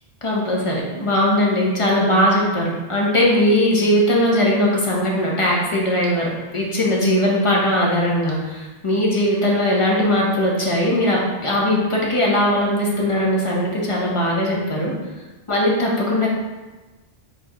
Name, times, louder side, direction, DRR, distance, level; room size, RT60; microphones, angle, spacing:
voice 1, 0.2-8.4 8.8-14.9 15.5-16.3, left 1 dB, 30° left, -3 dB, 0.8 m, -19 dB
4.5 x 3.7 x 2.9 m, 1.2 s
omnidirectional pair, 1.1 m